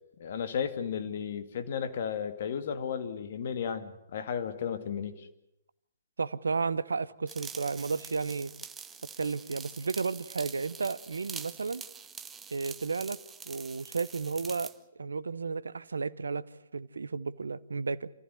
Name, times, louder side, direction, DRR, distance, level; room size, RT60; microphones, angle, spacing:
voice 1, 0.2-5.3, left 7 dB, 55° left, 2.3 m, -34 dB
voice 2, 6.2-8.5 9.2-11.8 12.5-13.2 13.5-14.7 15.0-16.5 16.7-18.1, right 4 dB, 80° right, 0.9 m, -33 dB
sound 1, 7.3-14.8, right 6 dB, 15° right, 1.0 m, -45 dB
27.5 x 14.5 x 9.7 m
figure-of-eight pair, 125°, 0 cm